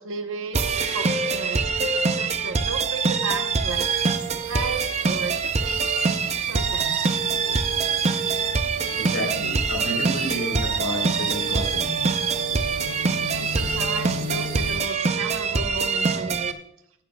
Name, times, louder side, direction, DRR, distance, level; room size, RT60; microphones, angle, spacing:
voice 1, 0.0-3.9 4.4-7.1 13.3-16.6, right 4 dB, 65° right, 5 dB, 1.0 m, -34 dB
sound 1, 0.5-16.5, right 5 dB, 30° right, 0.6 m, -24 dB
sound 2, 3.7-14.8, right 1 dB, 85° right, 1.9 m, -37 dB
voice 2, 9.0-12.1, left 1 dB, 70° left, 1 dB, 3.8 m, -31 dB
15.5 x 11.5 x 2.3 m, 0.76 s
head